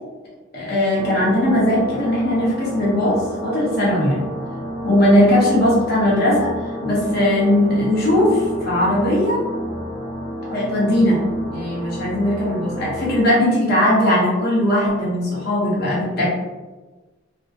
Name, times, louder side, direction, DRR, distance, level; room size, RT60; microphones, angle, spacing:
voice 1, 0.5-4.3 4.8-6.5 6.8-9.4 10.5-11.2 11.5-16.3, left 1 dB, 50° left, -6 dB, 0.7 m, -19 dB
sound 1, 1.0-13.2, equal, 5° left, 0.7 m, -30 dB
2.5 x 2.0 x 2.4 m, 1.2 s
head